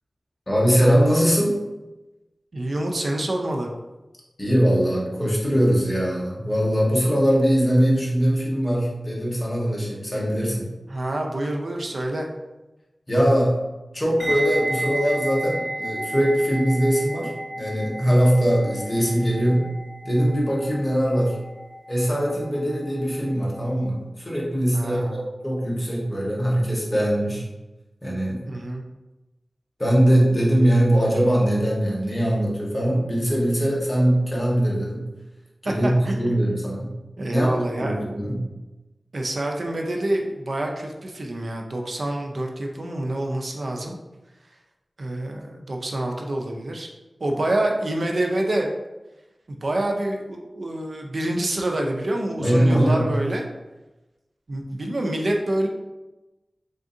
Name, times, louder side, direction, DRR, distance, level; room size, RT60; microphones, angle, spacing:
voice 1, 0.5-1.6 4.4-10.6 13.1-13.5 13.9-19.6 20.0-21.3 21.9-27.4 28.0-28.4 29.8-35.0 35.6-36.9 37.3-37.5 37.7-38.4 52.4-53.1, equal, 25° left, -4 dB, 1.1 m, -21 dB
voice 2, 2.5-3.7 10.9-12.3 24.7-25.3 28.5-28.8 35.6-36.4 37.2-38.0 39.1-44.0 45.0-46.9 47.2-48.7 49.5-53.4 54.5-55.7, right 1 dB, 65° right, 1 dB, 0.5 m, -27 dB
sound 1, 14.2-23.2 23.4-23.7, right 1 dB, ahead, 1.2 m, -32 dB
3.7 x 3.5 x 2.6 m, 1.1 s
wide cardioid pair, 65°, 0 cm